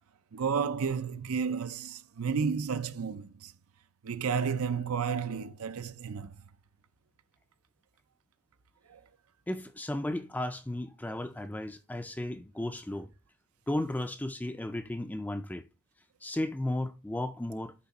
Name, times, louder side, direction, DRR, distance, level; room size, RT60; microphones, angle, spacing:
voice 1, 0.3-3.5 4.0-6.4 8.9-9.0, right 6 dB, 90° right, 0.6 m, -32 dB
voice 2, 9.5-13.1 13.7-15.6 16.2-17.7, left 1 dB, 10° left, 0.3 m, -34 dB
9.5 x 3.5 x 4.1 m
head